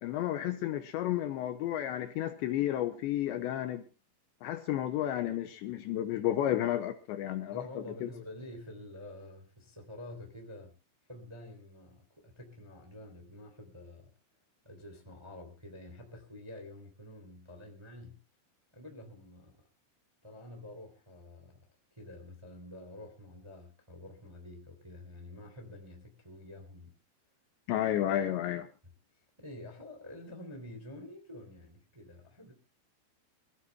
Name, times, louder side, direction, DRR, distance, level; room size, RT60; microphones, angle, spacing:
voice 1, 0.0-3.8 4.4-8.1 27.7-28.7, left 12 dB, 75° left, 2.8 m, -32 dB
voice 2, 7.5-10.8 11.1-14.1 14.6-18.2 18.7-19.6 20.2-21.6 22.0-26.9 29.4-32.5, left 1 dB, 10° right, 1.9 m, -48 dB
26.5 x 15.5 x 2.3 m
omnidirectional pair, 5.8 m